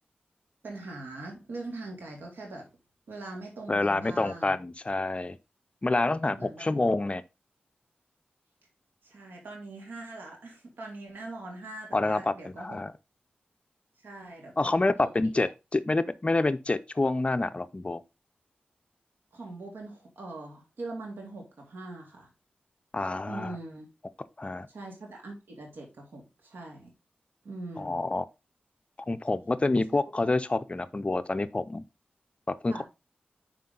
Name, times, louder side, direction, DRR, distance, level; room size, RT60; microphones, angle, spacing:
voice 1, 0.6-2.7 3.1-4.5 6.3-6.7 9.0-12.8 14.0-15.1 15.4-15.5 19.3-22.3 23.3-23.9 24.7-26.9 27.4-28.1 32.7-32.8, right 2 dB, 85° right, 2.2 m, -42 dB
voice 2, 3.7-5.4 5.8-7.2 11.9-12.9 14.6-18.0 22.9-23.5 24.4-24.7 27.8-28.2 29.1-31.8 32.6-32.8, left 2 dB, 35° left, 0.5 m, -27 dB
5.7 x 4.8 x 3.8 m
cardioid pair, 50°, 3 cm